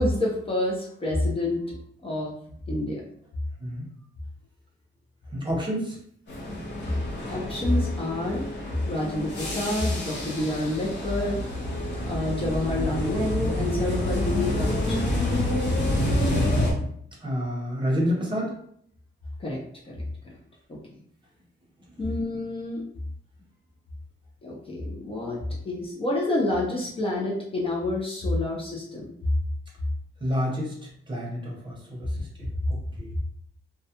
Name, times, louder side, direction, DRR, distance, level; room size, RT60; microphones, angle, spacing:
voice 1, 0.0-1.8 2.0-2.3 2.7-3.0 7.3-8.5 8.8-11.4 12.0-15.0 19.4-19.6 20.7-20.8 22.0-22.8 24.4-25.4 25.6-29.1, left 1 dB, 25° left, -4 dB, 0.5 m, -28 dB
voice 2, 5.3-6.0 17.2-18.5 30.2-30.7 31.1-32.3 33.0-33.1, equal, 25° right, -3 dB, 0.8 m, -28 dB
sound 1, 6.3-16.7, left 1 dB, 60° left, 0.8 m, -28 dB
2.3 x 2.1 x 2.8 m, 0.65 s
wide cardioid pair, 120°, 21 cm